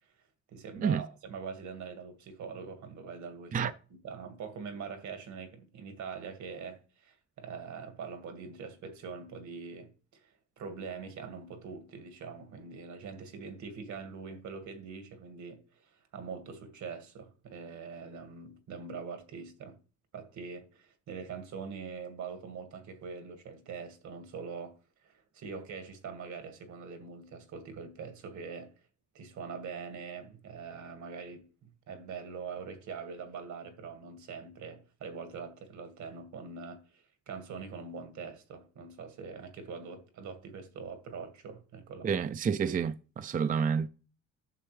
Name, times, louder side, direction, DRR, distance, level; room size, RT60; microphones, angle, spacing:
voice 1, 0.5-19.8 20.1-24.8 25.0-28.7 29.1-42.2, right 5 dB, 70° right, 2.1 m, -43 dB
voice 2, 42.0-43.9, right 6 dB, 30° right, 0.4 m, -29 dB
11.0 x 6.8 x 3.3 m
cardioid pair, 90°, 30 cm